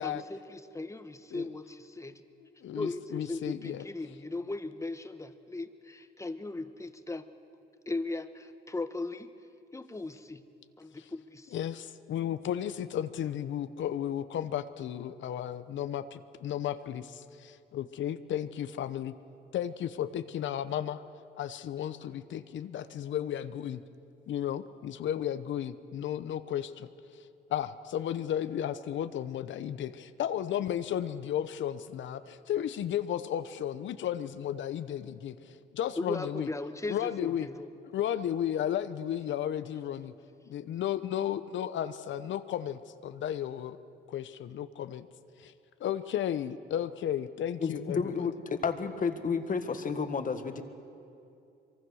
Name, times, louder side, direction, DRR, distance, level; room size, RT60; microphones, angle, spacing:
voice 1, 0.0-2.2 2.7-7.3 7.9-9.3 9.7-10.4 10.8-11.5 36.0-37.7, left 2 dB, 15° left, 10 dB, 1.3 m, -38 dB
voice 2, 2.4-3.8 11.5-19.1 19.5-21.0 21.4-23.8 24.3-26.9 27.5-36.5 36.9-37.5 37.9-40.1 40.5-43.8 44.1-45.1 45.4-45.5 45.8-48.3, left 10 dB, 70° left, 12 dB, 0.9 m, -34 dB
voice 3, 47.6-50.6, left 5 dB, 40° left, 8 dB, 1.8 m, -31 dB
24.5 x 23.5 x 6.4 m, 2.6 s
cardioid pair, 90°, 20 cm